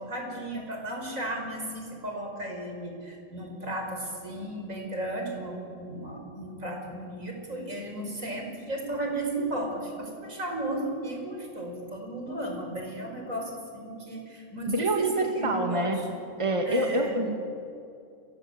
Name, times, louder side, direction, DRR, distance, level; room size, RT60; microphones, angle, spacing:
voice 1, 0.0-16.1 16.6-17.2, right 1 dB, 70° right, 2 dB, 5.6 m, -35 dB
voice 2, 14.6-16.0 16.4-17.4, right 2 dB, 20° right, 3 dB, 2.2 m, -26 dB
30.0 x 23.5 x 8.2 m, 2.5 s
omnidirectional pair, 1.4 m